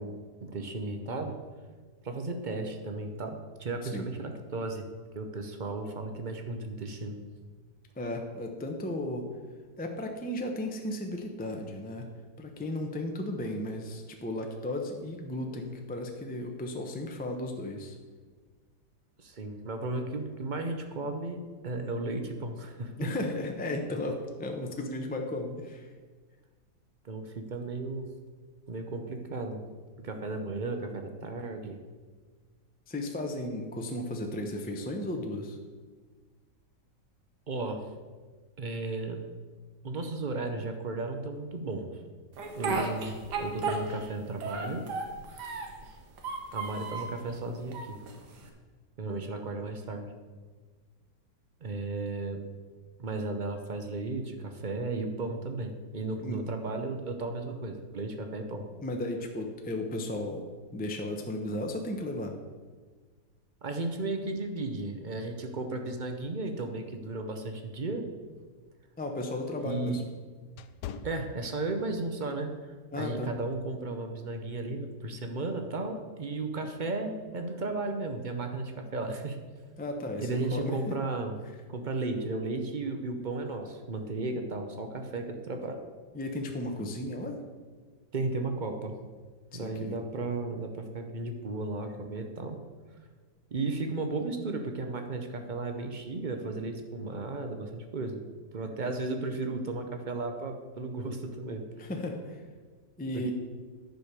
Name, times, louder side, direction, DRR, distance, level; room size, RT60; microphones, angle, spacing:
voice 1, 0.0-1.4 2.0-4.9 5.1-7.2 19.2-23.1 27.0-28.1 28.7-29.6 30.0-31.8 37.5-37.9 38.6-39.2 39.8-41.9 42.5-44.8 46.5-48.0 49.0-50.1 51.6-52.5 53.0-58.6 63.6-68.0 69.6-70.0 71.0-79.4 80.2-81.4 81.7-85.8 88.1-89.0 89.5-92.6 93.5-98.2 98.5-101.7 103.1-103.3, right 3 dB, 50° right, 5 dB, 0.6 m, -34 dB
voice 2, 8.0-9.3 9.8-12.1 12.4-17.9 23.0-25.9 32.9-35.6 56.2-56.4 58.8-60.5 60.7-62.3 69.0-70.0 72.9-73.3 79.8-81.0 86.1-87.4 89.5-90.0 101.8-102.4 103.0-103.3, left 1 dB, 10° left, 3 dB, 0.4 m, -35 dB
Speech, 42.4-44.1 44.4-45.8 46.2-47.2 47.7-48.5, right 3 dB, 70° right, 1.7 m, -34 dB
sound 1, 68.3-72.0 72.5-72.7 73.3-73.6, left 7 dB, 75° left, 1.1 m, -45 dB
10.5 x 5.0 x 6.7 m, 1.4 s
omnidirectional pair, 1.9 m